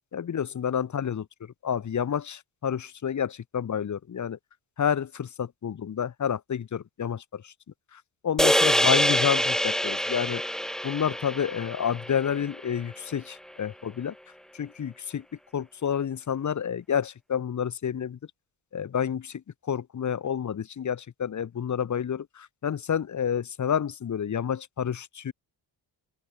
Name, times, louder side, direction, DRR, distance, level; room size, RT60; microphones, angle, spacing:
voice 1, 0.1-4.4 4.8-7.5 7.9-10.6 10.8-14.1 14.5-15.2 15.5-18.2 18.7-25.3, left 8 dB, 40° left, 1.0 m, -29 dB
sound 1, 8.4-12.8, equal, ahead, 0.7 m, -25 dB
open air
cardioid pair, 80°, 44 cm